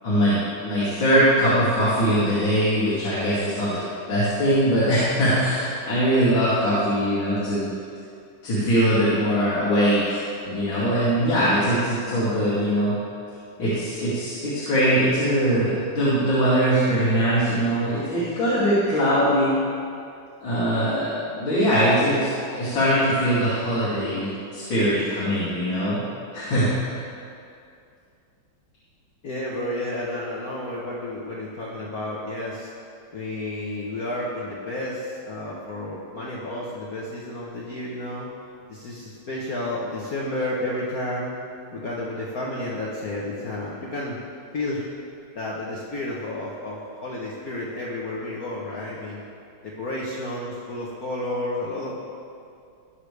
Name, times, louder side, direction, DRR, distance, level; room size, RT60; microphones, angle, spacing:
voice 1, 0.0-3.8 4.1-7.6 8.4-12.9 13.6-19.5 20.4-26.0 26.3-26.7, equal, 70° left, -11 dB, 3.4 m, -21 dB
voice 2, 29.2-32.7 33.1-38.3 38.7-41.4 41.7-44.2 44.5-44.9 45.3-49.2 49.6-51.9, left 1 dB, 50° left, -5 dB, 1.4 m, -31 dB
20.0 x 6.7 x 3.3 m, 2.5 s
omnidirectional pair, 2.3 m